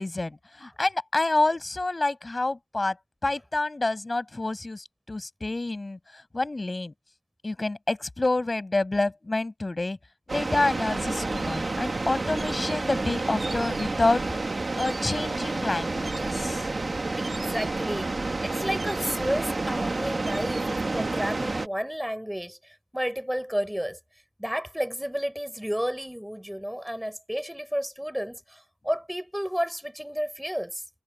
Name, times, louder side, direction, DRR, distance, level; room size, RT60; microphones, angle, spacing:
voice 1, 0.0-3.0 3.2-6.9 7.4-10.0 10.3-14.2 14.8-16.7, left 2 dB, 35° left, 6.4 m, -28 dB
sound 1, 10.3-21.7, right 3 dB, 45° right, 2.0 m, -29 dB
voice 2, 17.2-18.1 18.4-24.0 24.4-30.8, equal, 5° right, 7.5 m, -31 dB
cardioid pair, 40°, 0 cm